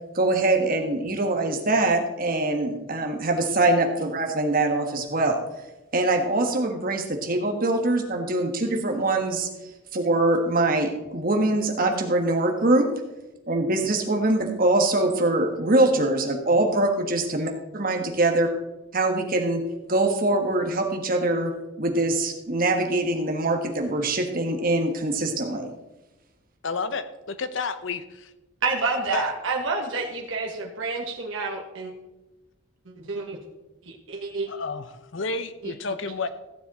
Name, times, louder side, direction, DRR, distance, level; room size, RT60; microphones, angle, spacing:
voice 1, 0.1-5.4 5.9-9.5 9.9-12.9 13.5-18.5 18.9-19.6 19.9-21.5 21.8-25.7, right 2 dB, 45° right, 4 dB, 1.4 m, -23 dB
voice 2, 26.6-28.3 29.1-29.2 34.5-36.3, left 4 dB, 65° left, 12 dB, 0.7 m, -31 dB
voice 3, 28.6-31.9 33.0-33.3 34.1-34.5 35.6-35.7, right 3 dB, 70° right, -2 dB, 1.5 m, -28 dB
15.0 x 7.3 x 4.2 m, 1.0 s
head